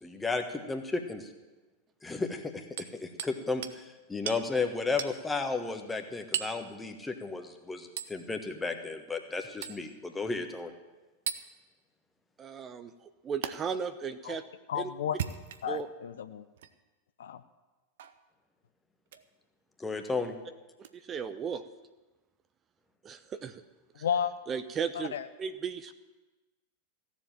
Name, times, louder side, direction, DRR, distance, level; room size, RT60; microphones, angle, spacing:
voice 1, 0.0-1.3 2.0-10.7 19.8-20.4, left 3 dB, 10° left, 5 dB, 1.4 m, -34 dB
Hammer, 2.8-3.4 3.6-3.8 4.3-4.4 5.0-5.2 6.3-6.6 8.0-8.2 9.6-9.8 11.3-11.4 13.4-13.5 15.0-15.8 16.6-16.7 18.0-18.2 19.1-19.3 20.8-20.9, right 9 dB, 60° right, 0.8 m, -36 dB
voice 2, 12.4-12.9 13.2-14.4 14.8-14.9 15.7-15.9 21.1-21.6 23.0-23.6 24.5-25.1 25.4-25.9, right 6 dB, 25° right, 11 dB, 0.7 m, -35 dB
voice 3, 14.7-15.2 15.6-16.5 17.2-17.4 23.9-24.3 24.9-25.3, left 8 dB, 65° left, 11 dB, 0.6 m, -32 dB
16.0 x 7.4 x 9.0 m, 1.2 s
figure-of-eight pair, 90°, 0 cm